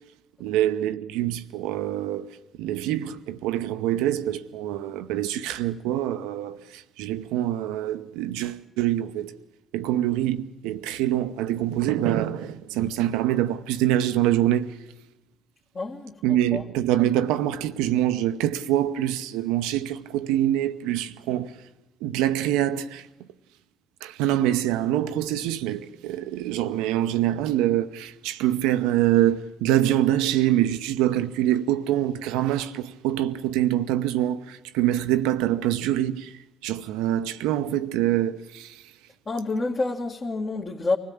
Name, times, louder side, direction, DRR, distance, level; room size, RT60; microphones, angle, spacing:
voice 1, 0.4-2.3 2.6-9.4 9.7-14.8 16.2-21.6 22.0-23.1 24.0-36.3 36.6-38.8, right 12 dB, 85° right, 0.9 m, -25 dB
voice 2, 15.7-16.6 39.3-41.0, left 3 dB, 40° left, 2.1 m, -28 dB
24.0 x 16.5 x 8.7 m
supercardioid pair, 65°, 0 cm